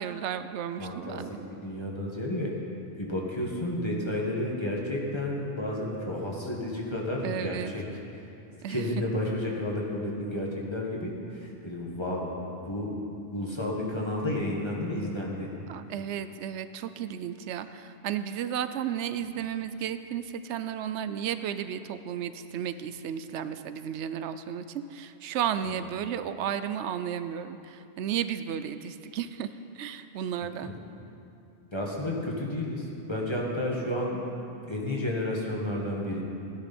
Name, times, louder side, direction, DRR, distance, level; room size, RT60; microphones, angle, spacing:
voice 1, 0.0-1.4 7.2-7.7 8.6-9.0 15.7-29.5 29.7-30.7, right 9 dB, 90° right, 11 dB, 0.9 m, -33 dB
voice 2, 0.8-1.2 1.5-2.5 3.0-7.8 8.7-12.3 12.7-12.9 13.3-15.5 25.6-25.8 30.6-30.7 31.7-34.2 34.7-36.2, left 1 dB, 25° left, -3 dB, 1.7 m, -31 dB
16.5 x 9.9 x 4.3 m, 2.7 s
omnidirectional pair, 1.1 m